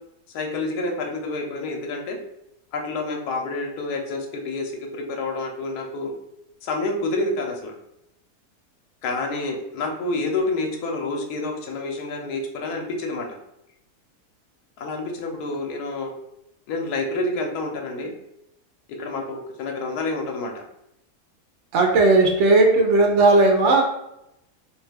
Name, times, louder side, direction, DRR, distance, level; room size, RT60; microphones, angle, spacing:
voice 1, 0.3-2.2 2.7-6.1 6.6-7.7 9.0-13.3 14.8-16.1 16.7-18.1 18.9-20.6, left 2 dB, 80° left, 2 dB, 1.2 m, -28 dB
voice 2, 21.7-23.8, right 2 dB, 60° right, 2 dB, 0.8 m, -16 dB
2.8 x 2.3 x 3.3 m, 0.82 s
omnidirectional pair, 1.7 m